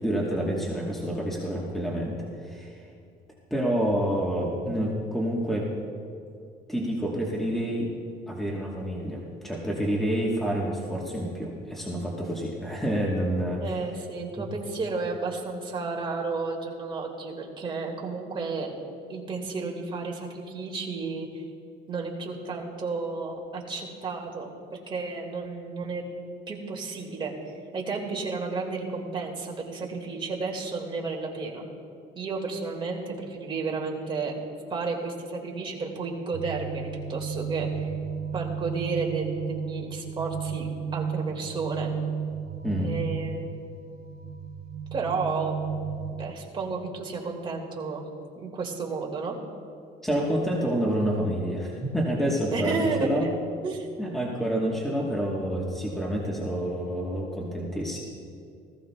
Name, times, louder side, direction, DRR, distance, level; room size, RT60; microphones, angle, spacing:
voice 1, 0.0-2.2 2.4-2.8 3.5-5.7 6.7-7.9 8.3-13.6 42.6-42.9 50.0-53.3 54.0-58.0, equal, ahead, -3 dB, 1.2 m, -28 dB
voice 2, 13.6-18.7 19.1-21.4 21.9-26.0 26.5-27.3 27.7-31.6 32.2-34.3 34.7-37.9 38.3-40.7 40.9-41.9 42.8-43.5 44.9-45.8 46.2-48.0 48.4-49.3 52.5-53.3 53.6-53.9, right 4 dB, 30° right, 0 dB, 1.8 m, -32 dB
sound 1, 36.3-46.3, right 7 dB, 55° right, 0.6 m, -33 dB
19.0 x 14.5 x 2.2 m, 2.4 s
cardioid pair, 155°, 18 cm